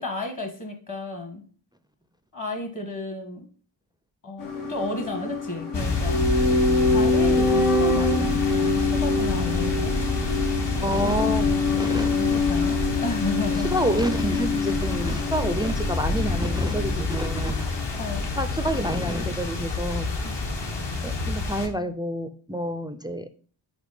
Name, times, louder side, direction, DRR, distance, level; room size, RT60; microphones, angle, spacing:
voice 1, 0.0-1.4 2.3-3.5 4.2-6.2 6.8-9.9 10.9-11.3 12.2-13.8 18.0-18.3 20.2-20.3, left 2 dB, 40° left, 6 dB, 1.4 m, -32 dB
sound 1, 4.4-18.5 18.7-18.8, left 3 dB, 80° left, 1.6 m, -25 dB
sound 2, 5.7-21.7, left 3 dB, 60° left, 1.2 m, -28 dB
voice 2, 10.8-11.4 11.8-12.1 13.6-17.7 18.4-20.1 20.4-20.5 21.0-23.3, equal, 10° right, 10 dB, 0.3 m, -28 dB
5.1 x 4.3 x 4.9 m, 0.43 s
wide cardioid pair, 105°, 48 cm